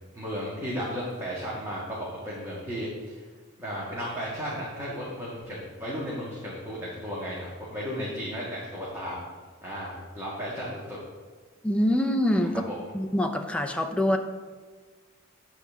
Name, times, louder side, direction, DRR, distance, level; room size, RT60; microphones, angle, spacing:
voice 1, 0.1-3.2 3.6-9.2 9.6-11.0 12.7-12.8, equal, 15° right, -7 dB, 1.8 m, -34 dB
voice 2, 11.6-12.6 12.9-14.2, left 1 dB, 5° left, 4 dB, 0.6 m, -25 dB
9.6 x 4.3 x 7.0 m, 1.5 s
head